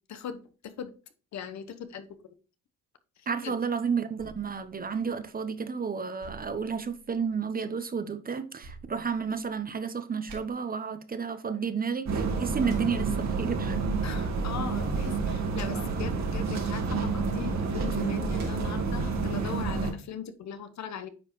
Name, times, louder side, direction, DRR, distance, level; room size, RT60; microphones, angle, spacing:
voice 1, 0.1-0.9 1.3-2.1 3.4-3.5 14.0-21.1, left 8 dB, 65° left, 1.0 m, -39 dB
voice 2, 3.3-13.8, right 6 dB, 30° right, 0.9 m, -31 dB
sound 1, 4.2-5.6 6.2-7.4 8.6-9.8 10.3-10.4 12.7-12.8 15.5-15.7 18.4-18.5, right 4 dB, 80° right, 2.5 m, -49 dB
sound 2, 12.1-19.9, right 4 dB, 60° right, 1.9 m, -29 dB
9.4 x 4.8 x 3.1 m
cardioid pair, 90°, 30 cm